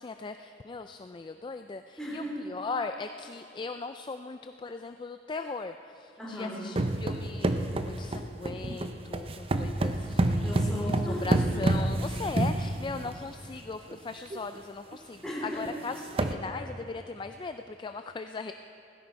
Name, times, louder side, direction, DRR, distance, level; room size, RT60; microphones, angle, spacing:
voice 1, 0.0-5.7 6.3-10.4 11.2-15.2 15.6-18.5, left 4 dB, 25° left, 8 dB, 0.3 m, -38 dB
voice 2, 2.0-2.4 6.2-6.7 10.4-11.4 15.2-15.7, equal, 5° left, -6 dB, 3.6 m, -36 dB
sound 1, 6.8-13.3 13.9-14.0 14.3-14.6 14.9-15.0 15.7-15.8 16.0-16.3, right 1 dB, 30° right, 0.6 m, -28 dB
17.0 x 15.5 x 4.7 m, 2.8 s
head